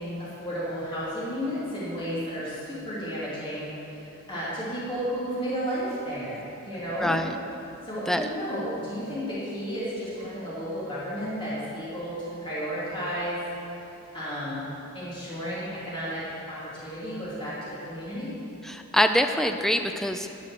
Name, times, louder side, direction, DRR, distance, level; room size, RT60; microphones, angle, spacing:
voice 1, 0.0-7.1 7.8-13.4 13.8-13.9 14.1-14.6 14.9-18.3, equal, 25° left, -10 dB, 2.8 m, -33 dB
voice 2, 7.0-7.3 8.1-8.3 18.6-20.3, equal, ahead, 6 dB, 0.4 m, -24 dB
12.0 x 6.3 x 7.5 m, 2.9 s
head